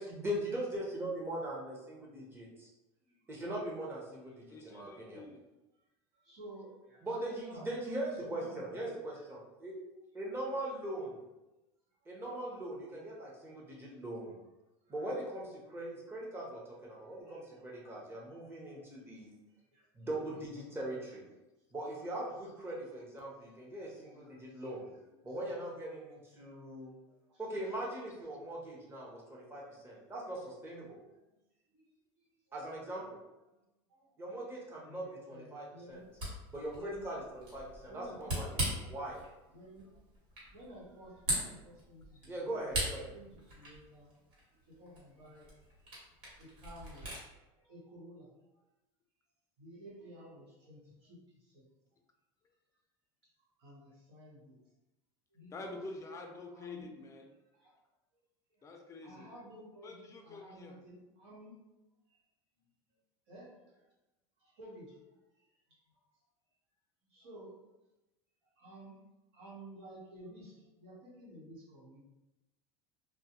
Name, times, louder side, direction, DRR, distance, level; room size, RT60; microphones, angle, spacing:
voice 1, 0.0-2.7 3.3-4.3 4.6-5.2 7.0-9.7 10.1-11.2 12.1-14.4 14.9-19.3 19.9-21.2 21.7-24.9 25.2-26.9 27.4-31.0 32.5-33.2 34.2-36.0 36.5-39.2 42.3-43.1, right 1 dB, 15° right, -4 dB, 0.7 m, -40 dB
voice 2, 3.0-3.3 4.2-4.6 6.1-7.7 8.1-8.8 9.1-9.2 10.1-10.7 13.8-13.9 14.8-15.3 17.0-19.1 19.5-19.9 20.2-20.3 21.8-22.3 23.2-23.5 23.8-25.4 27.1-27.7 29.6-29.7 30.9-31.3 31.7-31.9 32.1-32.6 33.5-33.6 33.9-36.0 36.7-37.1 37.9-38.4 38.8-39.0 39.5-40.0 40.5-42.6 43.1-45.9 46.2-48.6 49.6-51.6 53.6-54.6 55.3-55.8 56.1-56.2 56.5-56.9 57.5-57.7 58.5-58.7 59.0-61.5 62.1-62.2 63.3-63.9 64.4-65.8 67.1-67.7 68.4-69.0 69.3-72.0, right 1 dB, 85° right, -7 dB, 1.2 m, -54 dB
voice 3, 4.5-5.4 55.5-57.3 58.6-59.3 59.8-60.8, left 3 dB, 20° left, 3 dB, 0.4 m, -47 dB
Camera, 35.9-47.3, right 1 dB, 65° right, 1.4 m, -41 dB
2.2 x 2.1 x 2.9 m, 0.99 s
supercardioid pair, 120°, 14 cm